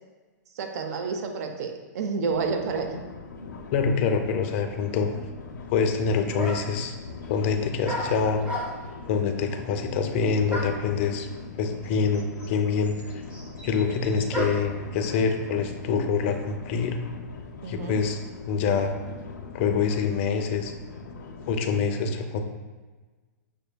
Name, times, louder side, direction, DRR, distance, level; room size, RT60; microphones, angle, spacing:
voice 1, 0.5-3.0 3.4-3.5 17.6-18.0, right 5 dB, 60° right, 4 dB, 0.5 m, -30 dB
sound 1, 2.3-21.6, left 4 dB, 90° left, 0.5 m, -41 dB
voice 2, 3.7-5.1 5.7-6.9 7.3-8.4 9.1-11.3 11.5-13.2 13.6-17.0 17.7-18.2 18.5-19.0 19.5-20.7 21.5-22.4, left 5 dB, 40° left, 5 dB, 0.4 m, -25 dB
sound 2, 5.9-6.0 6.4-6.8 7.8-9.0 10.5-10.9 11.8-11.9 12.1-14.8, right 1 dB, 10° right, 0.7 m, -33 dB
6.2 x 2.6 x 2.2 m, 1.3 s
hypercardioid pair, 145°, 10 cm